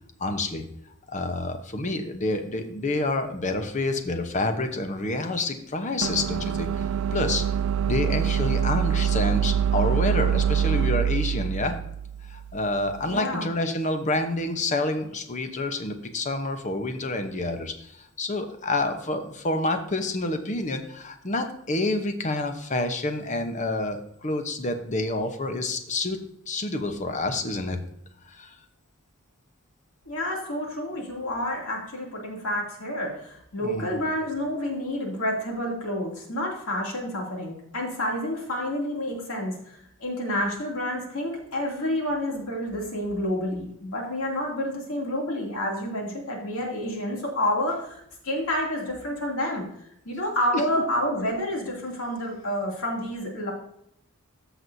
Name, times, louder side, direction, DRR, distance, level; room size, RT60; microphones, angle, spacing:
voice 1, 0.2-0.6 1.1-7.4 7.9-11.8 12.3-27.8 28.3-28.6 33.6-34.0, left 2 dB, 35° left, 7 dB, 0.9 m, -28 dB
sound 1, 6.0-13.1, right 8 dB, 80° right, 0.3 m, -25 dB
voice 2, 13.1-13.5 30.1-39.6 40.0-49.6 50.0-53.5, left 1 dB, 80° left, -1 dB, 2.8 m, -29 dB
14.0 x 6.2 x 2.7 m, 0.74 s
head